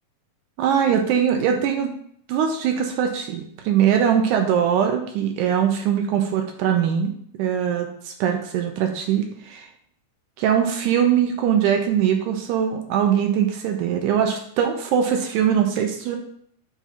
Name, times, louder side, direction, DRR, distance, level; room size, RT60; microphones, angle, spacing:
voice 1, 0.6-1.9 2.3-9.7 10.4-16.2, right 8 dB, 80° right, 3 dB, 2.0 m, -21 dB
7.4 x 2.7 x 5.4 m, 0.66 s
omnidirectional pair, 3.8 m